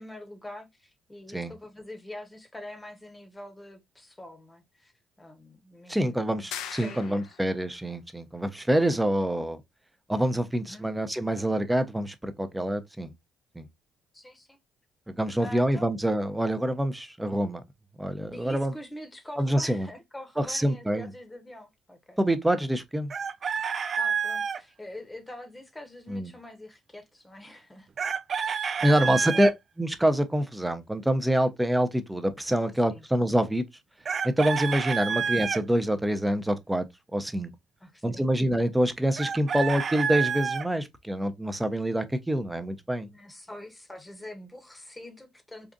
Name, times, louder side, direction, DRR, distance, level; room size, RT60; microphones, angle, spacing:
voice 1, 0.0-4.9 5.2-6.5 6.8-7.4 10.7-10.9 14.1-14.6 15.4-15.9 18.3-22.2 23.6-23.7 24.0-27.9 28.4-29.4 32.6-33.0 35.1-35.2 37.8-38.3 43.0-45.7, left 1 dB, 15° left, 0.9 m, -45 dB
voice 2, 5.9-9.6 10.1-13.1 13.6-13.7 15.1-17.6 18.0-18.7 19.4-19.9 20.4-21.1 22.2-23.1 26.1-26.3 28.8-29.5 29.8-33.6 34.2-36.8 37.1-37.5 38.0-43.1, right 1 dB, 10° right, 0.6 m, -26 dB
sound 1, 6.5-7.6, left 9 dB, 80° left, 0.4 m, -39 dB
Chicken rooster, 23.1-24.6 28.0-29.5 34.0-35.6 39.2-40.7, right 6 dB, 45° right, 0.3 m, -29 dB
3.8 x 2.5 x 2.4 m
supercardioid pair, 80°, 0 cm